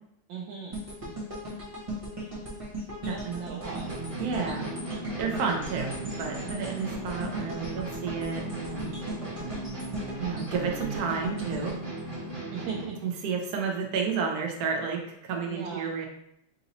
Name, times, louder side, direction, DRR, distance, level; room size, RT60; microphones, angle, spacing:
voice 1, 0.3-0.8 3.1-3.9 4.3-4.7 12.5-13.0 15.5-15.9, right 6 dB, 90° right, -2 dB, 1.4 m, -38 dB
sound 1, 0.7-12.9 13.3-13.5, equal, 25° right, 0.8 m, -38 dB
voice 2, 3.0-3.6 4.2-4.7 5.2-5.9 6.2-8.9 10.2-11.8 13.0-16.1, right 5 dB, 60° right, 1 dB, 1.1 m, -31 dB
sound 2, 3.6-13.0, right 2 dB, 40° right, 1.8 m, -37 dB
3.9 x 2.8 x 4.1 m, 0.74 s
omnidirectional pair, 2.1 m